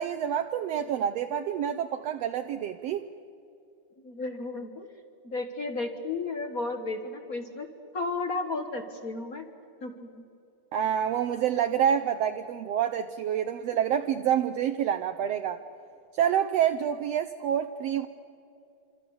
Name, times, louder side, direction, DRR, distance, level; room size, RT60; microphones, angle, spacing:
voice 1, 0.0-3.1 10.7-15.6 16.1-18.1, right 9 dB, 75° right, 7 dB, 1.6 m, -27 dB
voice 2, 4.0-7.7 7.9-9.4 9.8-10.1, left 3 dB, 50° left, 6 dB, 1.0 m, -33 dB
27.0 x 25.5 x 7.0 m, 2.6 s
omnidirectional pair, 3.3 m